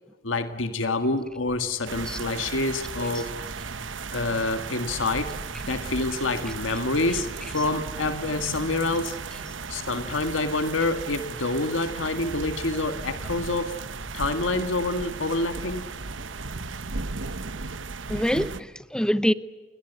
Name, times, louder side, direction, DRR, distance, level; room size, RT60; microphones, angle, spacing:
voice 1, 0.2-3.7 4.1-5.3 5.6-9.2 9.7-13.8 14.1-15.9, left 2 dB, 90° left, 1.8 m, -27 dB
Vehicle / Accelerating revving vroom / Squeak, 1.2-18.1, equal, 20° right, 4.4 m, -47 dB
sound 1, 1.9-18.6, right 4 dB, 75° right, 1.1 m, -36 dB
voice 2, 18.1-19.3, equal, 5° left, 0.8 m, -26 dB
30.0 x 22.5 x 8.1 m
head